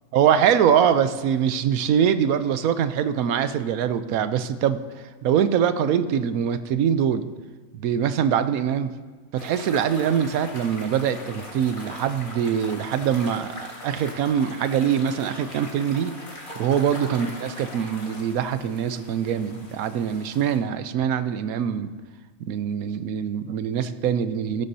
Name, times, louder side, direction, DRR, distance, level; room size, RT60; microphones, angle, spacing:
voice 1, 0.1-7.3 7.7-8.9 9.3-16.1 16.6-21.9 22.4-24.7, right 8 dB, 85° right, 12 dB, 1.1 m, -23 dB
sound 1, 9.4-20.6, left 1 dB, 35° left, 1.9 m, -41 dB
15.0 x 12.0 x 2.8 m, 1.4 s
omnidirectional pair, 1.5 m